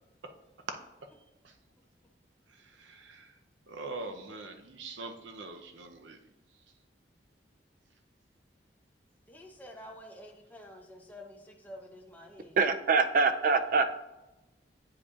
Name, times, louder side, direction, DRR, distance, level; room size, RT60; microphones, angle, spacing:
voice 1, 2.8-3.3 3.7-6.2, right 3 dB, 85° right, 6 dB, 0.6 m, -43 dB
voice 2, 9.3-12.6, equal, 10° left, 1 dB, 0.7 m, -49 dB
voice 3, 12.6-13.9, right 4 dB, 50° right, 10 dB, 0.3 m, -24 dB
8.4 x 5.0 x 2.4 m, 0.99 s
head